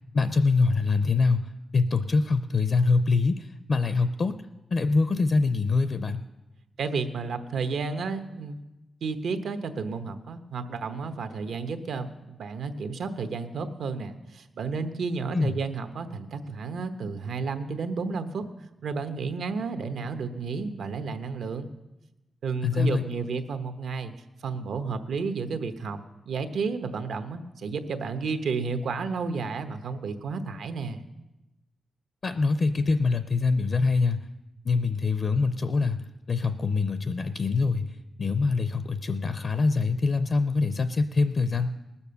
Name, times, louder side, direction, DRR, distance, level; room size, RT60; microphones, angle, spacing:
voice 1, 0.1-4.4 4.7-6.2 15.3-15.5 22.6-23.0 32.2-34.2 34.7-37.9 38.2-41.7, left 4 dB, 40° left, 11 dB, 0.5 m, -24 dB
voice 2, 6.8-8.6 9.0-18.5 18.8-21.7 22.4-24.1 24.4-26.0 26.3-31.0, right 4 dB, 85° right, 8 dB, 1.0 m, -32 dB
19.5 x 7.0 x 6.9 m, 1.0 s
wide cardioid pair, 165°, 0 cm